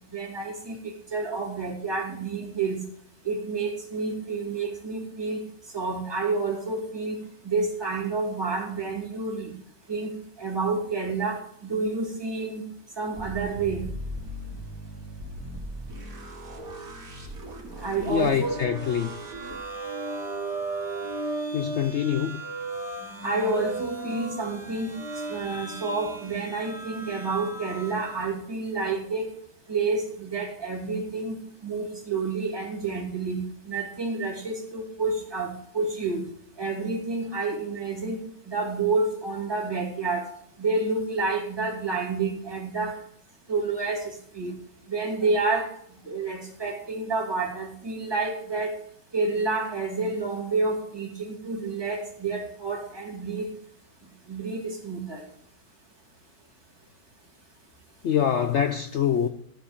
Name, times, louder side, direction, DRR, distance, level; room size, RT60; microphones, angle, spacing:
voice 1, 0.1-2.8 3.2-5.4 5.7-9.6 9.9-10.1 10.4-12.7 13.0-13.9 17.8-18.5 23.2-25.0 25.3-29.3 29.7-36.3 36.6-38.2 38.5-40.3 40.6-43.0 43.5-44.5 44.9-45.7 46.0-48.8 49.1-53.5 54.3-55.2, right 3 dB, 15° right, 2.3 m, -29 dB
sound 1, 13.1-19.6, equal, 50° right, 2.5 m, -39 dB
voice 2, 18.0-19.1 21.5-22.4 58.0-59.3, left 8 dB, 80° left, 0.6 m, -25 dB
sound 2, 18.1-28.3, right 3 dB, 70° right, 2.3 m, -36 dB
12.5 x 4.8 x 8.5 m
omnidirectional pair, 1.9 m